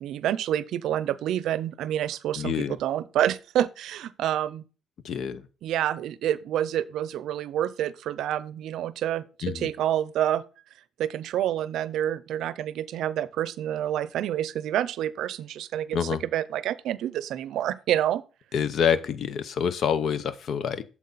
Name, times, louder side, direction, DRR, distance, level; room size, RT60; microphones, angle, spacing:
voice 1, 0.0-4.6 5.6-10.4 11.0-18.2, right 11 dB, 80° right, 0.5 m, -28 dB
voice 2, 2.4-2.8 5.0-5.5 9.4-9.7 15.9-16.2 18.5-20.8, left 7 dB, 65° left, 0.8 m, -27 dB
8.4 x 7.2 x 4.1 m
cardioid pair, 90°, 0 cm